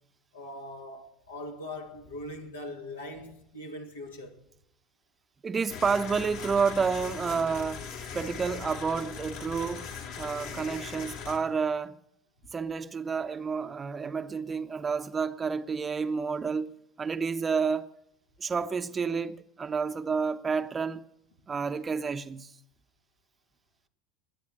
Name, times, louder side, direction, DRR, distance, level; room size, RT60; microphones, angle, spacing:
voice 1, 0.3-4.4, left 1 dB, 75° left, 2.5 m, -41 dB
voice 2, 5.4-7.9 8.1-9.9 10.2-12.0 12.5-16.7 17.0-17.9 18.4-21.0 21.5-22.5, right 5 dB, 25° right, 0.8 m, -30 dB
sound 1, 5.7-11.4, left 6 dB, 60° left, 3.0 m, -40 dB
20.5 x 8.8 x 6.5 m
figure-of-eight pair, 70°, 0 cm